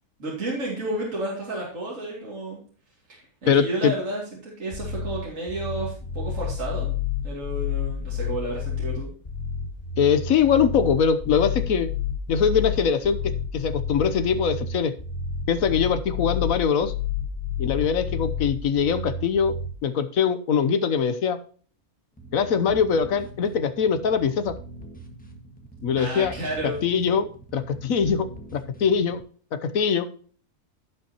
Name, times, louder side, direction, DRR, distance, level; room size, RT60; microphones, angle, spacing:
voice 1, 0.2-2.6 3.1-6.9 7.2-9.1 26.0-26.8, right 1 dB, 60° right, -5 dB, 3.0 m, -31 dB
voice 2, 3.5-3.9 10.0-11.9 12.3-14.9 15.5-16.9 17.6-19.5 19.8-21.4 22.3-24.6 25.8-26.3 26.6-29.2 29.5-30.1, left 7 dB, 70° left, 11 dB, 1.2 m, -22 dB
sound 1, 4.7-19.7, left 6 dB, 30° left, 0.9 m, -30 dB
sound 2, 22.2-29.2, right 2 dB, 5° left, 1.4 m, -43 dB
16.5 x 5.7 x 2.9 m, 0.43 s
omnidirectional pair, 1.5 m